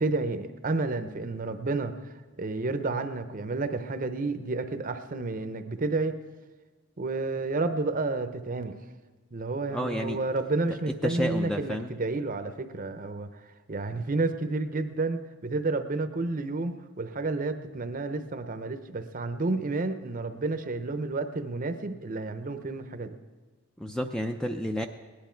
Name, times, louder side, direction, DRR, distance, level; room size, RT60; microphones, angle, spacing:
voice 1, 0.0-1.9 2.4-6.2 7.0-8.7 9.3-13.4 13.7-23.2, right 3 dB, 40° right, 9 dB, 0.7 m, -30 dB
voice 2, 9.7-10.2 11.0-11.9 23.8-24.9, equal, 5° left, 5 dB, 0.4 m, -30 dB
18.0 x 10.5 x 4.5 m, 1.4 s
head